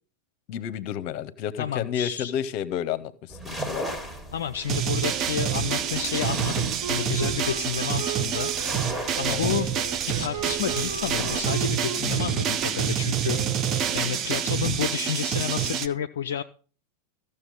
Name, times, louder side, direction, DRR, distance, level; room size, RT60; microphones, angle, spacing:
voice 1, 0.5-4.0 9.3-9.5, left 9 dB, 45° left, 16 dB, 0.9 m, -31 dB
voice 2, 1.6-2.3 4.3-9.7 10.1-13.4 13.9-16.4, left 9 dB, 65° left, 9 dB, 0.5 m, -30 dB
sound 1, 3.3-11.4, right 1 dB, 10° right, 1.8 m, -38 dB
sound 2, 4.6-15.9, right 9 dB, 35° right, 0.7 m, -27 dB
Wind instrument woodwind instrument, 5.0-14.5, right 5 dB, 85° right, 4.4 m, -37 dB
14.5 x 6.8 x 5.4 m, 0.39 s
figure-of-eight pair, 90°, 0 cm